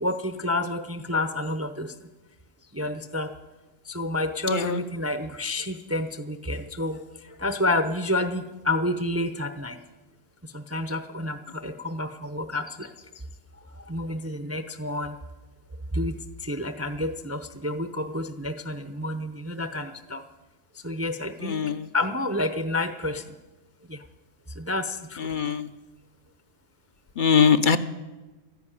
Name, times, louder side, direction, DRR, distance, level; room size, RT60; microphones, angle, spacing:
voice 1, 0.4-1.9 2.8-3.3 4.0-6.1 6.5-6.9 7.4-9.7 10.7-11.3 11.6-12.1 12.3-12.6 13.9-15.1 16.0-16.1 16.5-17.4 17.6-19.8 20.1-20.2 20.9-21.6 21.9-23.1 24.7-24.8, left 1 dB, 15° right, 9 dB, 0.5 m, -28 dB
voice 2, 4.5-4.8 21.5-21.7 25.2-25.6 27.2-27.8, left 6 dB, 50° left, 11 dB, 0.7 m, -21 dB
13.0 x 10.5 x 9.9 m, 1.1 s
omnidirectional pair, 1.4 m